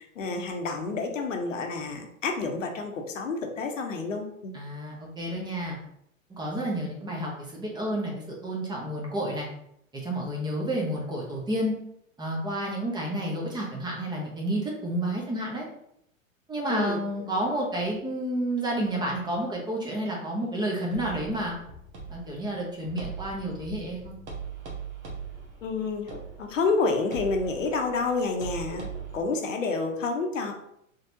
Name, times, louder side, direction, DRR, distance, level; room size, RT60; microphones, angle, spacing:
voice 1, 0.0-4.5 16.6-17.0 25.6-30.5, left 4 dB, 65° left, 4 dB, 0.8 m, -29 dB
voice 2, 4.5-5.8 6.3-9.5 9.9-11.7 12.2-15.6 16.5-21.5 22.1-24.1, right 1 dB, 10° right, -2 dB, 0.8 m, -30 dB
sound 1, 20.9-29.2, right 5 dB, 60° right, 1.3 m, -41 dB
3.9 x 3.3 x 2.7 m, 0.74 s
figure-of-eight pair, 95°, 41 cm